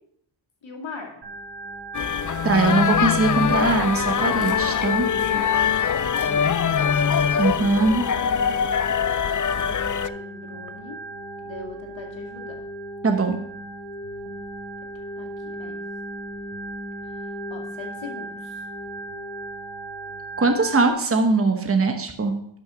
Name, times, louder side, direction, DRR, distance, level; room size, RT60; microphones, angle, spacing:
voice 1, 0.6-1.3 5.3-6.5 8.4-8.6 9.0-11.0 11.4-12.6 15.2-15.7 17.0-18.7, left 3 dB, 65° left, 1 dB, 2.4 m, -41 dB
Organ, 1.2-20.9, right 1 dB, 60° right, 1.9 m, -37 dB
sound 1, 1.9-10.1, left 7 dB, 40° left, 0.5 m, -23 dB
voice 2, 2.4-5.1 7.4-8.0 13.0-13.4 20.4-22.3, right 3 dB, 30° right, 5 dB, 1.0 m, -21 dB
12.0 x 6.1 x 5.0 m, 0.72 s
wide cardioid pair, 85°, 48 cm